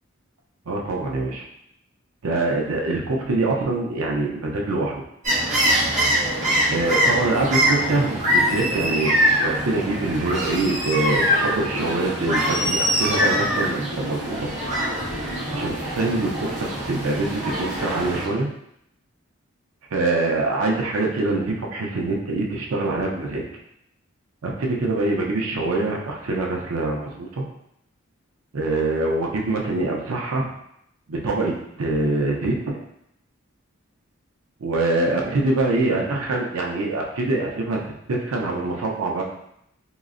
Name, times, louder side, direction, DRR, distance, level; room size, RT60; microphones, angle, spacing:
voice 1, 0.7-1.4 2.2-5.0 6.7-9.2 9.4-14.5 15.5-18.5 19.9-23.4 24.4-27.5 28.5-30.5 31.1-32.8 34.6-39.2, right 2 dB, 85° right, -1 dB, 0.5 m, -24 dB
sound 1, 5.2-18.3, equal, 35° right, 0.7 m, -23 dB
3.7 x 2.0 x 2.5 m, 0.75 s
head